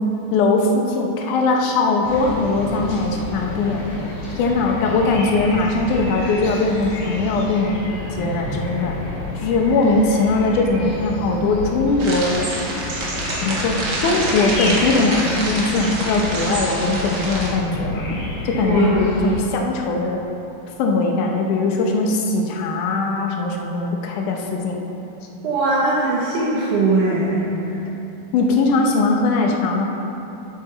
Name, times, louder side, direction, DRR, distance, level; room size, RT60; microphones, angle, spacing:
voice 1, 0.3-3.8 4.4-7.7 8.1-8.9 9.3-12.5 13.4-18.2 18.5-20.2 20.8-24.8 28.3-29.8, left 3 dB, 70° left, 1 dB, 2.3 m, -20 dB
sound 1, 2.0-19.4, left 2 dB, 90° left, 3.7 m, -30 dB
sound 2, 12.0-17.5, right 2 dB, 50° right, 1.2 m, -27 dB
voice 2, 18.6-19.4 25.4-27.7, right 3 dB, 70° right, -6 dB, 2.4 m, -21 dB
12.0 x 8.1 x 4.0 m, 2.9 s
omnidirectional pair, 4.0 m